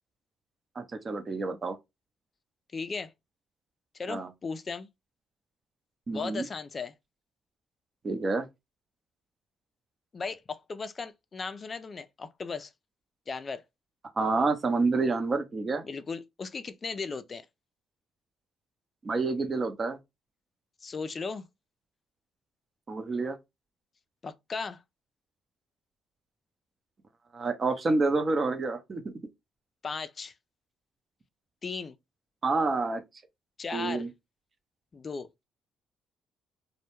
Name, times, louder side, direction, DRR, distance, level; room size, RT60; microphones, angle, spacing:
voice 1, 0.8-1.8 4.1-4.3 6.1-6.5 8.0-8.5 14.2-15.8 19.0-20.0 22.9-23.4 27.3-29.1 32.4-33.0 33.7-34.1, right 3 dB, 40° right, 0.5 m, -28 dB
voice 2, 2.7-3.1 4.0-4.9 6.1-6.9 10.1-12.7 13.3-13.6 15.8-17.5 20.8-21.5 24.2-24.8 29.8-30.3 31.6-31.9 33.6-34.0 34.9-35.3, left 4 dB, 40° left, 0.3 m, -36 dB
2.1 x 2.1 x 2.9 m
supercardioid pair, 60°, 0 cm